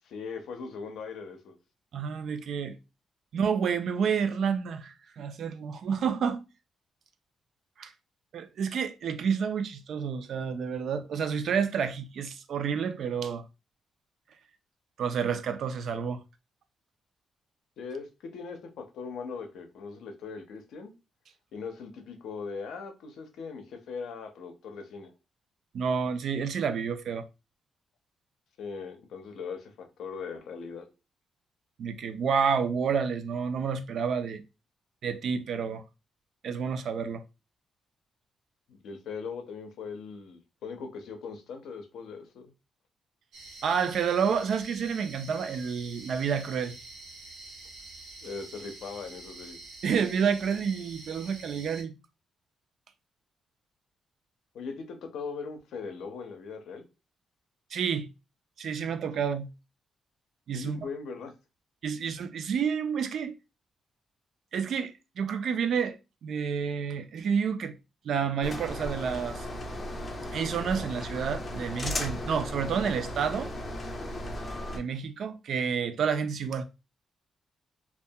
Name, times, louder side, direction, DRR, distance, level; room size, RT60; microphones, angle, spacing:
voice 1, 0.0-1.6 17.8-20.9 21.5-25.1 28.6-30.9 38.7-42.5 48.2-49.6 54.5-56.8 60.5-61.3, left 5 dB, 80° left, 0.5 m, -40 dB
voice 2, 1.9-2.8 3.3-6.4 7.8-7.9 8.3-13.4 15.0-16.2 25.7-27.3 31.8-34.4 35.0-35.8 36.4-37.2 43.6-46.7 49.8-51.9 57.7-58.1 58.6-59.5 60.5-60.9 61.8-63.3 64.5-66.0 66.2-67.8 68.0-69.5 70.3-73.5 74.7-76.6, right 6 dB, 60° right, 0.3 m, -29 dB
sound 1, 43.3-51.8, right 2 dB, 90° right, 0.9 m, -47 dB
sound 2, 68.4-74.8, left 1 dB, 25° left, 0.4 m, -36 dB
2.3 x 2.2 x 2.6 m
cardioid pair, 150°, 0 cm